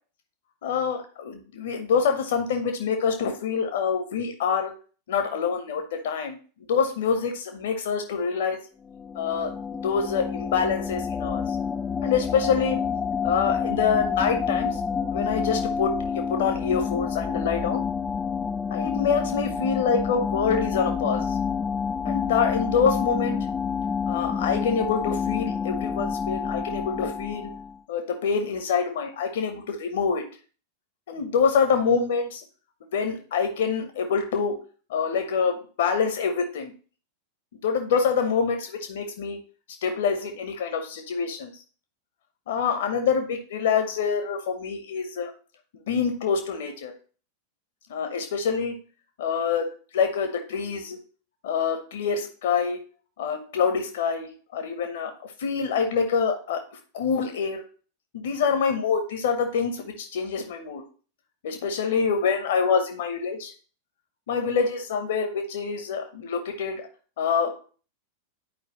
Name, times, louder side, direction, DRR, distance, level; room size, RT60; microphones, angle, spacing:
voice 1, 0.6-4.7 5.1-6.4 6.7-8.6 9.1-9.6 9.8-11.6 12.0-12.8 13.2-14.8 15.1-17.8 18.7-21.4 22.0-23.4 24.1-27.5 27.9-30.2 31.1-32.4 32.9-34.6 34.9-36.7 37.6-39.4 39.8-41.6 42.5-45.3 45.9-46.9 47.9-48.8 49.2-49.7 49.9-51.0 51.4-52.8 53.2-56.6 56.9-57.7 58.1-60.8 61.4-63.5 64.3-66.9 67.2-67.7, left 6 dB, 55° left, 6 dB, 0.9 m, -26 dB
sound 1, 8.9-27.8, left 6 dB, 15° left, 0.3 m, -28 dB
10.5 x 4.6 x 3.0 m, 0.39 s
figure-of-eight pair, 90°, 0 cm